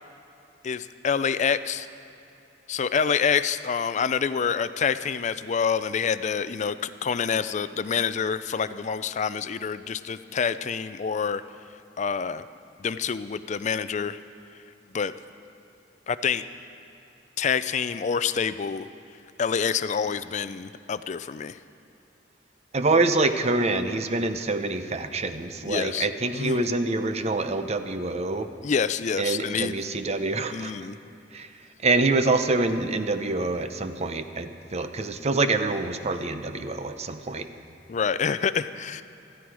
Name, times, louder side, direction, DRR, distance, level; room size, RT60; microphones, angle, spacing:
voice 1, 0.6-1.9 2.7-11.4 12.0-12.4 12.8-14.2 14.9-15.1 16.1-16.4 17.4-18.9 19.4-21.6 25.6-26.1 26.3-26.7 28.6-29.8 30.5-30.9 37.9-39.0, left 6 dB, 40° left, 13 dB, 0.4 m, -27 dB
voice 2, 22.7-28.5 29.2-30.7 31.3-31.5 31.8-37.5, right 3 dB, 40° right, 9 dB, 0.7 m, -26 dB
16.0 x 13.5 x 4.8 m, 2.8 s
head